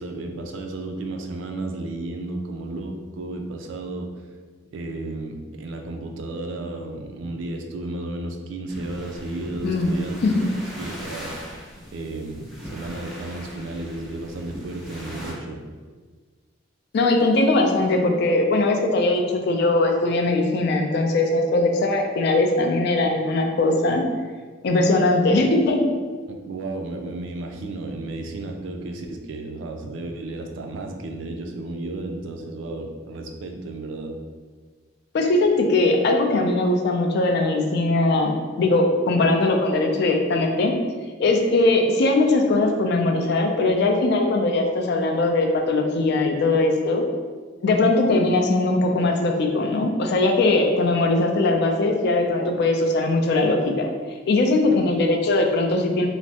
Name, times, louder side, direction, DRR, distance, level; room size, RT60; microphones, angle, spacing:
voice 1, 0.0-4.1 4.7-11.3 11.9-15.6 26.3-34.2 54.7-54.8, right 2 dB, 75° right, 3 dB, 0.4 m, -33 dB
sound 1, 8.7-15.3, equal, ahead, 0.6 m, -39 dB
voice 2, 16.9-24.0 24.6-25.8 35.1-40.7 41.2-47.0 47.6-53.9 54.3-56.1, left 2 dB, 60° left, 3 dB, 0.3 m, -20 dB
3.2 x 2.0 x 2.7 m, 1.5 s
head